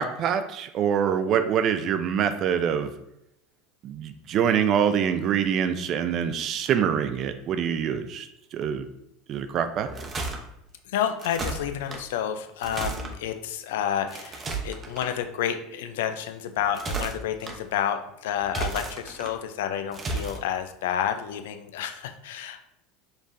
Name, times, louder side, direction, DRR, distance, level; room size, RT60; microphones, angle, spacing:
voice 1, 0.0-2.9 3.8-8.9 9.3-9.9, right 8 dB, 45° right, 9 dB, 0.4 m, -25 dB
sound 1, 9.7-10.4 11.2-12.0 12.6-13.1 14.1-15.1 16.6-17.5 18.4-19.3 19.9-20.4, right 3 dB, 25° right, 0.8 m, -33 dB
voice 2, 10.9-22.6, left 9 dB, 75° left, 8 dB, 0.4 m, -30 dB
5.2 x 3.3 x 2.6 m, 0.81 s
hypercardioid pair, 85°, 0 cm